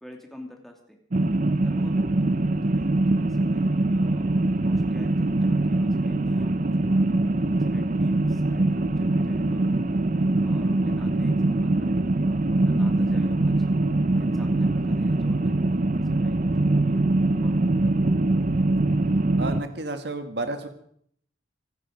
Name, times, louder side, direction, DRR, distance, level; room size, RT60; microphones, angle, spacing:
voice 1, 0.0-1.0 1.6-1.9 2.2-7.0 7.6-9.8 10.4-13.7 14.2-15.7 16.2-17.0 17.4-18.0, equal, ahead, 2 dB, 2.7 m, -46 dB
sound 1, 1.1-19.6, right 2 dB, 45° right, 0.7 m, -23 dB
voice 2, 19.4-20.7, right 2 dB, 60° right, 7 dB, 1.6 m, -31 dB
24.5 x 10.0 x 5.3 m, 0.67 s
head